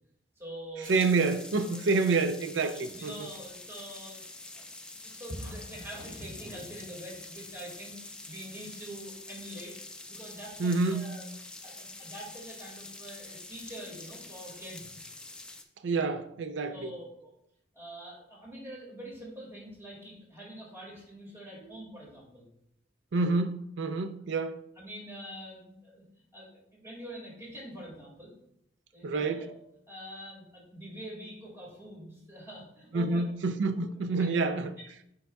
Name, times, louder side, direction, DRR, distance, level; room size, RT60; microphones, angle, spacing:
voice 1, 0.4-1.0 1.7-1.8 2.9-4.2 4.5-4.6 5.0-8.0 8.2-11.2 11.6-15.0 16.7-17.3 17.7-22.5 24.8-26.0 26.3-26.5 26.8-28.3 28.9-29.6 29.9-33.2 34.2-34.3 34.8-34.9, equal, 15° right, 2.1 m, -45 dB
sound 1, 0.8-15.6, left 2 dB, 5° left, 0.5 m, -46 dB
voice 2, 0.9-3.1 10.6-11.1 15.8-16.9 23.1-24.6 29.0-29.5 32.9-34.7, right 3 dB, 75° right, 0.5 m, -28 dB
8.8 x 5.4 x 2.3 m
head